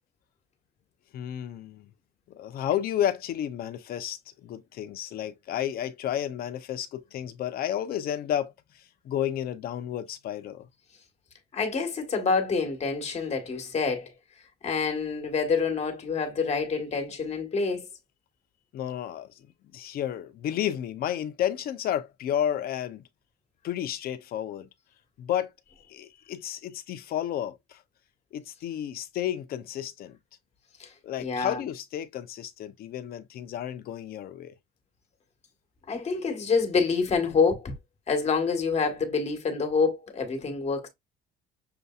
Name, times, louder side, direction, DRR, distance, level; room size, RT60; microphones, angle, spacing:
voice 1, 1.1-1.9 2.3-10.7 18.7-19.5 19.7-23.0 23.6-24.7 25.2-25.5 25.9-27.8 28.3-30.2 31.0-34.5, left 10 dB, 65° left, 0.7 m, -32 dB
voice 2, 11.5-14.1 14.6-17.9 30.8-30.9 31.2-31.6 35.9-37.7 38.1-40.9, left 5 dB, 40° left, 1.5 m, -27 dB
6.8 x 2.6 x 2.4 m
cardioid pair, 110°, 17 cm